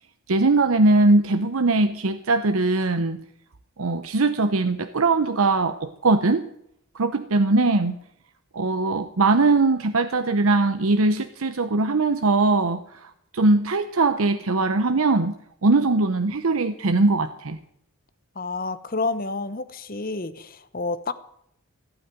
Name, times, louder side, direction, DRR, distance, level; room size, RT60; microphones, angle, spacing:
voice 1, 0.3-3.2 3.8-6.4 6.9-8.0 8.5-15.3 15.6-17.6, right 3 dB, 70° right, 0.8 m, -21 dB
voice 2, 18.3-21.1, left 3 dB, 40° left, 1.0 m, -29 dB
16.0 x 8.7 x 9.1 m
head